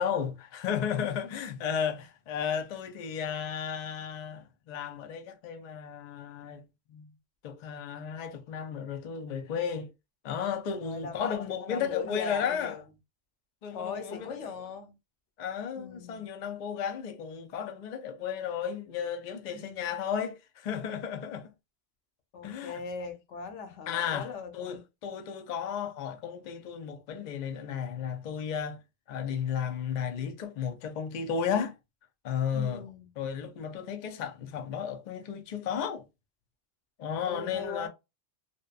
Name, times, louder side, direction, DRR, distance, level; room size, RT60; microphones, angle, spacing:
voice 1, 0.0-6.6 6.9-7.1 7.4-9.9 10.2-12.8 13.6-14.5 15.4-21.5 22.4-22.8 23.9-24.3 24.5-28.8 29.1-31.7 32.2-32.8 33.2-36.0 37.0-37.9, left 7 dB, 60° left, 0.4 m, -34 dB
voice 2, 1.0-1.5 10.8-11.4 11.7-12.8 13.7-15.0 15.8-16.3 19.5-19.9 22.3-24.8 32.5-33.1 37.3-37.9, left 5 dB, 80° left, 0.9 m, -40 dB
2.7 x 2.2 x 2.3 m
omnidirectional pair, 1.2 m